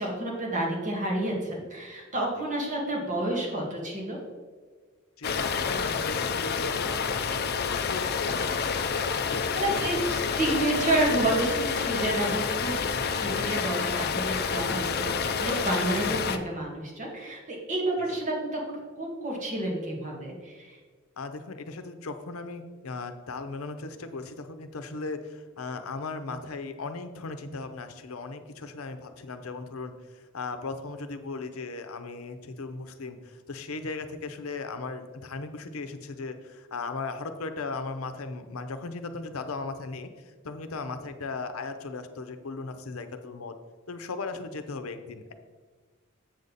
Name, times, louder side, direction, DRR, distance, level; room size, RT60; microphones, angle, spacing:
voice 1, 0.0-4.2 9.5-12.7 13.2-20.8, right 1 dB, 35° right, -2 dB, 1.9 m, -30 dB
voice 2, 5.2-7.3 7.7-8.6 9.0-10.3 13.0-13.6 21.2-43.5 43.9-45.3, left 3 dB, 85° left, 9 dB, 0.7 m, -37 dB
sound 1, 5.2-16.4, left 6 dB, 50° left, 0.5 m, -29 dB
8.0 x 6.6 x 4.1 m, 1.4 s
head